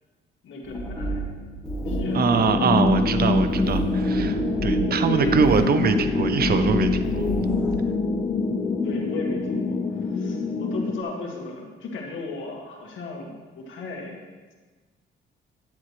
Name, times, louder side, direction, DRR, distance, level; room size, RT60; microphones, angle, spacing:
voice 1, 0.4-1.2 1.9-2.9 5.0-5.4 8.8-14.2, left 3 dB, 75° left, -1 dB, 1.9 m, -36 dB
sound 1, 0.6-7.7, right 1 dB, 5° left, 2.2 m, -32 dB
sound 2, 1.8-11.0, left 3 dB, 25° left, 0.6 m, -25 dB
voice 2, 2.1-7.3, right 6 dB, 50° right, 9 dB, 0.8 m, -23 dB
10.5 x 8.8 x 3.3 m, 1.3 s
cardioid pair, 90°, 20 cm